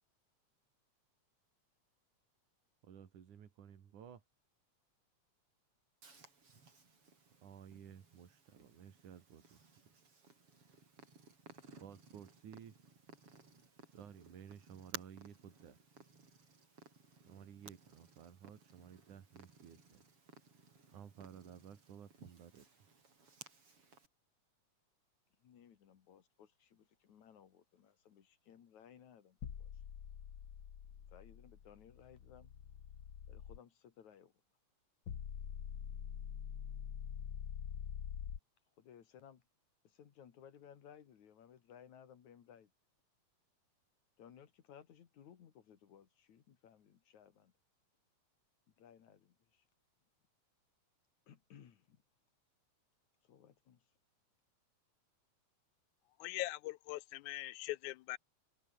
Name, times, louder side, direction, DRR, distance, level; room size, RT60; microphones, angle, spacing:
voice 1, 2.8-4.2 7.4-9.9 11.8-12.8 13.9-15.8 17.1-20.0 20.9-22.9, right 8 dB, 80° right, 3.9 m, -55 dB
Purr, 6.0-24.1, right 4 dB, 45° right, 5.7 m, -58 dB
voice 2, 25.4-29.7 31.1-32.5 33.3-34.3 38.8-39.4 39.9-42.7 44.2-47.5 48.8-49.3 51.3-52.0 53.3-53.8, left 8 dB, 70° left, 3.4 m, -60 dB
sound 1, 29.4-33.6 35.1-38.4, left 8 dB, 45° left, 1.6 m, -46 dB
voice 3, 56.2-58.2, left 17 dB, 85° left, 2.1 m, -41 dB
omnidirectional pair, 3.4 m